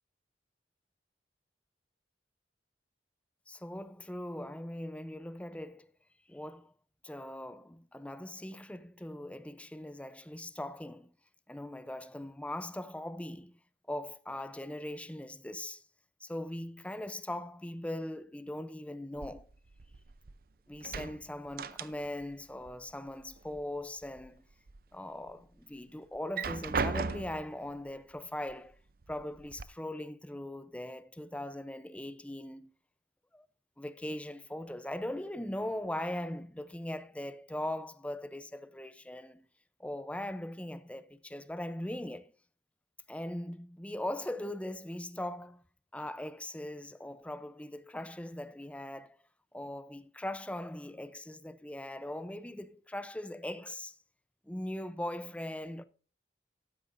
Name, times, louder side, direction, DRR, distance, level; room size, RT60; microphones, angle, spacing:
voice 1, 3.5-5.9 6.3-6.7 7.0-11.1 11.5-13.6 13.9-15.8 16.2-19.5 20.7-24.4 24.9-28.8 29.1-32.7 33.3-33.5 33.8-39.5 39.8-42.3 43.1-45.6 45.9-49.2 49.5-54.0 54.5-55.8, left 1 dB, 5° left, 0.6 m, -40 dB
sound 1, 19.2-20.4 20.7-22.3 22.6-23.6 24.0-24.8 25.3-25.4 26.1-27.5 28.5-28.6 29.0-29.6, right 4 dB, 55° right, 0.6 m, -37 dB
13.5 x 12.5 x 2.6 m
head